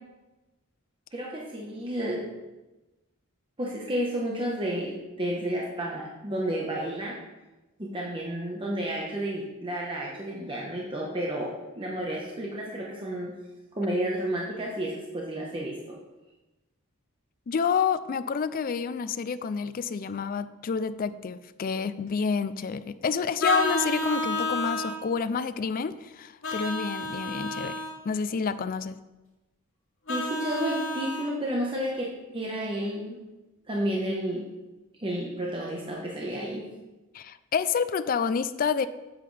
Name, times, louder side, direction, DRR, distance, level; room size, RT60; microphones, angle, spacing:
voice 1, 1.1-2.2 3.6-7.2 7.8-13.3 13.7-16.0 30.1-33.2 33.7-34.5 35.0-36.7, right 1 dB, 25° right, -3 dB, 1.1 m, -31 dB
voice 2, 17.5-27.7 28.0-29.0 37.1-38.9, left 6 dB, 40° left, 13 dB, 0.3 m, -29 dB
Vehicle horn car horn honking, 23.4-24.9 26.4-27.9 30.1-31.3, left 1 dB, 65° left, 2.9 m, -30 dB
9.1 x 7.6 x 3.3 m, 1.1 s
head